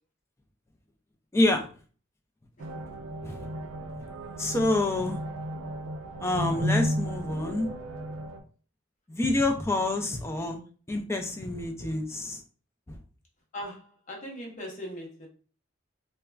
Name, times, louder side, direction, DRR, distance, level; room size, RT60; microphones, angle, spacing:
voice 1, 1.3-1.7 3.2-3.5 4.4-5.2 6.2-7.7 9.1-10.6 10.9-12.4 12.9-13.0, left 2 dB, 15° left, 0.3 m, -27 dB
sound 1, 2.6-8.4, equal, 75° right, 0.4 m, -33 dB
voice 2, 13.5-15.3, equal, 35° left, 0.7 m, -39 dB
3.4 x 2.1 x 2.3 m
head